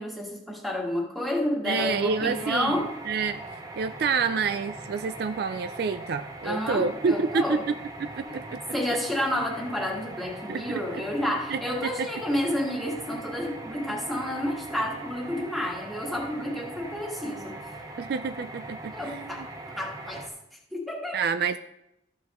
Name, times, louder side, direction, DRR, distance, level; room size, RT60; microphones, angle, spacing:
voice 1, 0.0-2.9 6.4-7.6 8.2-8.4 8.7-17.6 18.9-19.5 19.8-20.3 20.7-21.2, left 1 dB, ahead, -3 dB, 1.6 m, -30 dB
voice 2, 1.6-2.8 3.1-7.7 8.0-8.8 10.5-11.0 11.5-12.1 18.0-19.5 21.1-21.6, right 5 dB, 55° right, 9 dB, 0.3 m, -28 dB
sound 1, 1.8-20.3, right 2 dB, 20° right, 0.8 m, -41 dB
13.5 x 7.3 x 3.1 m, 0.85 s
head